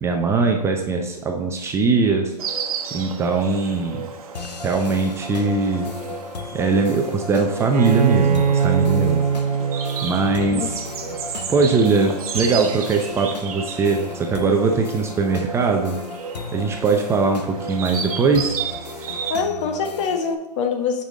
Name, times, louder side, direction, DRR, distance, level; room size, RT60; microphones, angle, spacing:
voice 1, 0.0-2.3 2.9-4.1 4.6-5.9 6.5-9.2 10.0-10.8 11.5-16.0 16.5-18.6, right 4 dB, 15° right, 2 dB, 0.5 m, -21 dB
Insect, 2.4-19.4, right 6 dB, 60° right, 1.1 m, -33 dB
sound 1, 4.3-20.3, left 4 dB, 85° left, 0.8 m, -36 dB
Bowed string instrument, 7.7-11.3, right 6 dB, 85° right, 0.5 m, -22 dB
voice 2, 19.3-21.0, left 5 dB, 50° left, 5 dB, 1.2 m, -24 dB
7.9 x 5.5 x 3.8 m, 0.95 s
hypercardioid pair, 130°, 21 cm